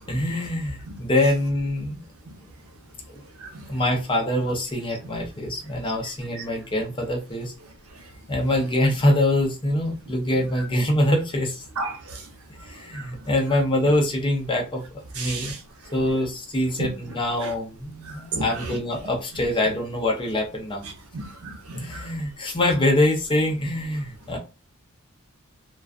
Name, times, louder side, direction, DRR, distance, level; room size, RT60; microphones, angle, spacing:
voice 1, 0.1-2.0 3.1-3.2 3.7-7.5 8.3-11.6 12.6-15.5 15.9-20.8 21.7-24.4, left 1 dB, 25° left, 0.6 m, -24 dB
voice 2, 11.8-12.2 15.2-15.6 16.8-16.9 17.4-17.5 18.1-18.7 21.1-22.0, right 3 dB, 80° right, 0.7 m, -33 dB
2.3 x 2.3 x 2.4 m
head